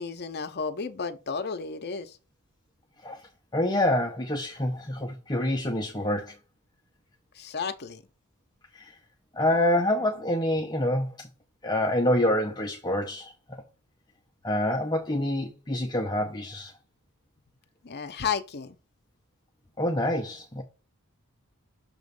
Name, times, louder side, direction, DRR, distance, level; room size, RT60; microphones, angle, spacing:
voice 1, 0.0-2.2 7.3-8.0 17.8-18.8, left 5 dB, 50° left, 0.8 m, -32 dB
voice 2, 3.5-6.3 8.7-8.9 9.3-11.3 11.6-13.3 14.4-16.7 19.8-20.6, left 1 dB, 20° left, 0.8 m, -26 dB
6.8 x 3.2 x 5.2 m
head